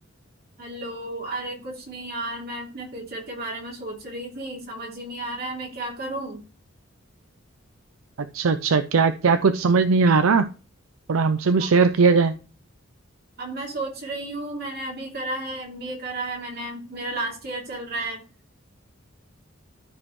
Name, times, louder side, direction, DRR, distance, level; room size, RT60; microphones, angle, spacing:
voice 1, 0.6-6.4 11.6-11.7 13.4-18.2, right 2 dB, 50° right, -1 dB, 2.9 m, -33 dB
voice 2, 8.3-10.5 11.1-12.4, right 4 dB, 90° right, 10 dB, 0.5 m, -19 dB
13.0 x 5.0 x 3.1 m, 0.34 s
head